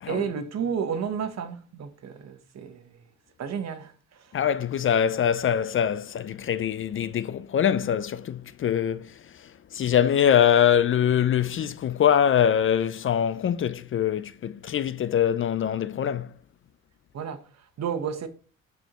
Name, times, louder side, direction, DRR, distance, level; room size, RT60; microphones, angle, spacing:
voice 1, 0.0-3.0 3.4-4.3 17.1-18.3, right 7 dB, 60° right, 1.2 m, -32 dB
voice 2, 4.3-16.3, left 9 dB, 45° left, 0.4 m, -23 dB
8.8 x 4.6 x 3.0 m
cardioid pair, 90°, 30 cm